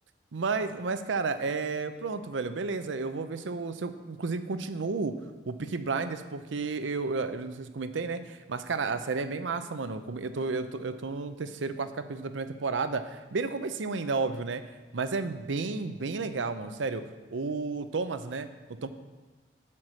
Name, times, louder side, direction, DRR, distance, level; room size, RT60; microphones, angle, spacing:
voice 1, 0.3-5.1 5.5-14.6 14.9-17.0 17.3-18.5 18.8-18.9, right 4 dB, 90° right, 10 dB, 0.6 m, -32 dB
7.6 x 5.9 x 6.4 m, 1.2 s
head